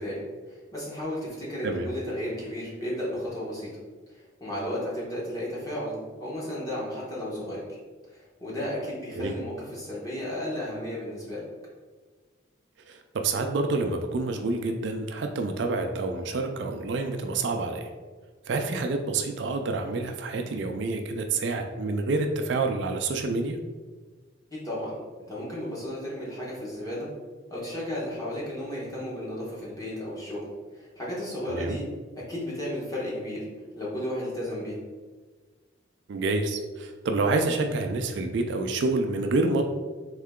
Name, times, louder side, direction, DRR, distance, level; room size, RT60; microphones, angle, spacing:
voice 1, 0.0-3.8 4.1-5.9 6.2-7.6 8.1-11.5 24.5-25.0 25.3-27.1 27.5-30.5 30.7-31.9 32.2-33.5 33.8-34.8, left 1 dB, 20° left, -6 dB, 1.1 m, -34 dB
voice 2, 1.6-1.9 9.2-9.3 12.9-17.9 18.5-23.6 31.5-31.8 36.1-39.6, right 3 dB, 60° right, 5 dB, 0.4 m, -28 dB
3.7 x 3.2 x 3.6 m, 1.4 s
head